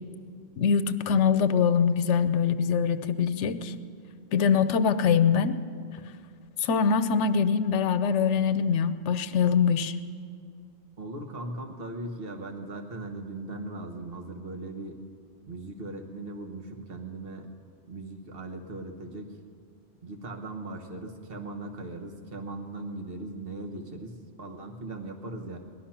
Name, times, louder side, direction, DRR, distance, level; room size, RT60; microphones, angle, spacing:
voice 1, 0.6-3.8 4.3-5.6 6.6-9.9, left 6 dB, 90° left, 13 dB, 1.0 m, -23 dB
voice 2, 11.0-15.0 15.5-17.5 17.9-19.3 20.0-25.6, right 2 dB, 55° right, 3 dB, 1.4 m, -39 dB
18.0 x 12.0 x 5.8 m, 2.3 s
omnidirectional pair, 1.2 m